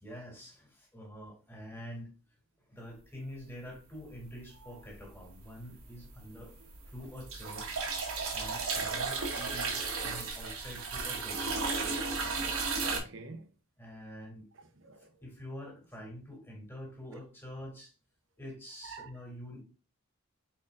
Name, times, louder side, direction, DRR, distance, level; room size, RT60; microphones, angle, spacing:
voice 1, 0.0-2.1 2.7-6.5 6.9-7.9 8.3-11.6 13.8-14.5 15.0-17.9 18.4-19.6, equal, 10° left, 2.3 m, -46 dB
sound 1, 4.9-5.4 5.8-13.0, right 4 dB, 90° right, 1.9 m, -34 dB
voice 2, 12.9-13.5 14.5-15.2 18.8-19.1, right 3 dB, 60° right, 0.9 m, -48 dB
5.0 x 4.3 x 2.4 m
head